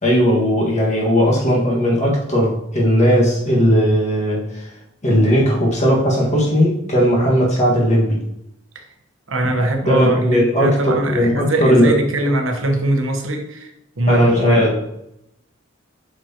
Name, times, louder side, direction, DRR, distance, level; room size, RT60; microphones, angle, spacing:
voice 1, 0.0-4.7 5.0-8.2 9.6-11.9 14.1-14.8, equal, 35° left, -3 dB, 1.8 m, -17 dB
voice 2, 9.3-13.7 14.0-14.9, right 1 dB, 85° right, 3 dB, 1.2 m, -21 dB
7.5 x 5.9 x 3.0 m, 0.81 s
head